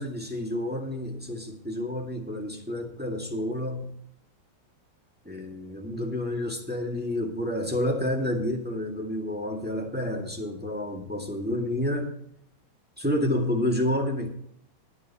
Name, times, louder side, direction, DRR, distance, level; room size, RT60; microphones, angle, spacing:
voice 1, 0.0-3.9 5.3-12.1 13.0-14.3, left 1 dB, 5° right, 0 dB, 1.8 m, -29 dB
19.5 x 9.5 x 2.9 m, 0.68 s
omnidirectional pair, 2.1 m